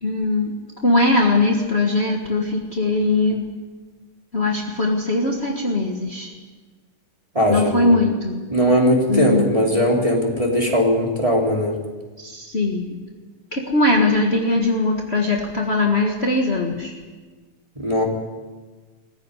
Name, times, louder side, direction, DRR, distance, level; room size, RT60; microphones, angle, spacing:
voice 1, 0.0-0.5 0.8-3.4 4.3-6.3 7.5-8.4 9.1-9.5 12.2-13.0 13.5-17.0, left 2 dB, 35° left, 0 dB, 0.9 m, -20 dB
voice 2, 7.3-7.9 8.5-11.7 17.7-18.0, equal, 10° right, -1 dB, 3.3 m, -19 dB
21.0 x 15.5 x 9.9 m, 1.3 s
omnidirectional pair, 4.0 m